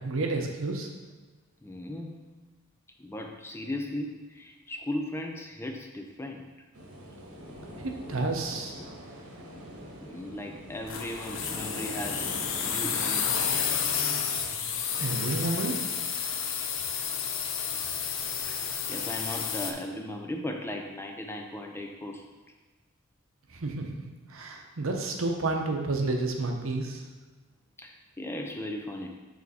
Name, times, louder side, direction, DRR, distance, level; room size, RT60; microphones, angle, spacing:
voice 1, 0.0-0.9 7.8-8.8 15.0-15.8 23.5-23.8 24.3-27.0, right 2 dB, 60° right, 3 dB, 0.8 m, -30 dB
voice 2, 1.6-2.3 3.0-6.5 10.0-12.3 12.6-13.5 18.5-18.6 18.9-22.3 27.8-29.1, left 1 dB, 10° left, 3 dB, 0.4 m, -37 dB
sound 1, 6.7-14.1, equal, 85° right, 1.3 m, -43 dB
sound 2, 10.9-19.7, left 7 dB, 60° left, 0.6 m, -31 dB
6.4 x 4.0 x 4.2 m, 1.3 s
head